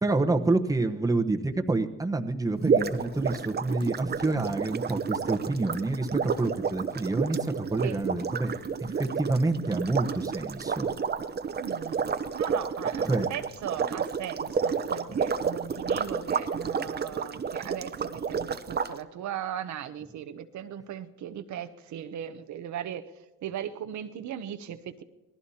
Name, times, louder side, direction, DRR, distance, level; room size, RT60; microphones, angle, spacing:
voice 1, 0.0-8.5 8.8-10.9 13.0-13.3, right 2 dB, 10° right, 5 dB, 1.0 m, -28 dB
sound 1, 2.6-18.9, right 6 dB, 35° right, 0.8 m, -30 dB
voice 2, 11.6-23.0 23.4-25.0, right 10 dB, 70° right, 9 dB, 0.8 m, -38 dB
26.5 x 18.5 x 2.8 m, 1.2 s
cardioid pair, 90°, 30 cm